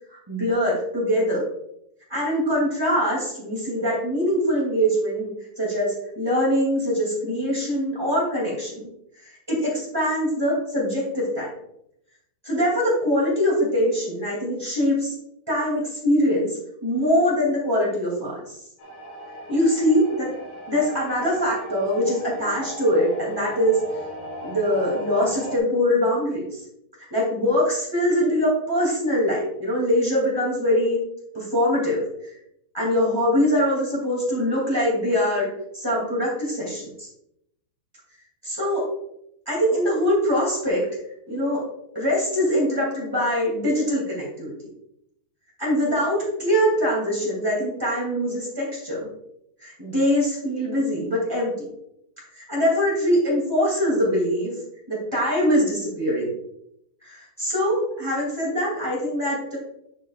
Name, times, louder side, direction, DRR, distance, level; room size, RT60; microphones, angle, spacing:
voice 1, 0.1-1.4 2.1-5.3 5.5-8.9 9.1-11.5 12.4-15.1 15.5-18.6 19.5-20.3 20.7-23.8 24.4-26.6 27.1-31.0 31.3-32.0 32.7-35.5 35.7-37.1 38.4-38.9 39.4-40.8 41.3-41.6 41.9-44.5 45.6-49.1 49.6-51.7 52.3-54.6 54.9-56.3 57.0-59.6, equal, 15° right, -5 dB, 0.8 m, -23 dB
sound 1, 18.8-25.6, right 1 dB, 60° left, 2.6 m, -37 dB
9.9 x 6.7 x 2.5 m, 0.77 s
omnidirectional pair, 5.9 m